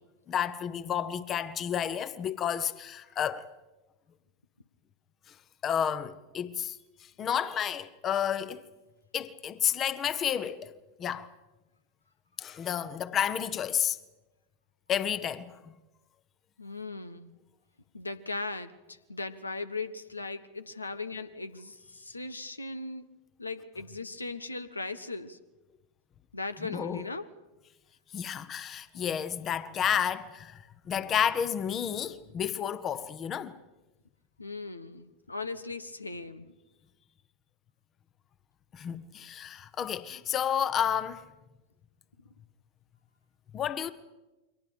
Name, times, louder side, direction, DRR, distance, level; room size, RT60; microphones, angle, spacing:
voice 1, 0.3-3.5 5.3-5.4 5.6-6.8 7.2-8.6 9.1-10.7 11.0-11.3 12.4-14.0 14.9-15.6 26.6-27.0 28.1-33.6 38.7-41.2 43.5-43.9, left 9 dB, 30° left, 1.1 m, -31 dB
voice 2, 16.6-17.3 17.9-23.1 23.4-25.4 26.3-27.2 34.4-36.5, left 3 dB, 80° left, 1.0 m, -38 dB
29.5 x 24.0 x 5.2 m
figure-of-eight pair, 90°, 0 cm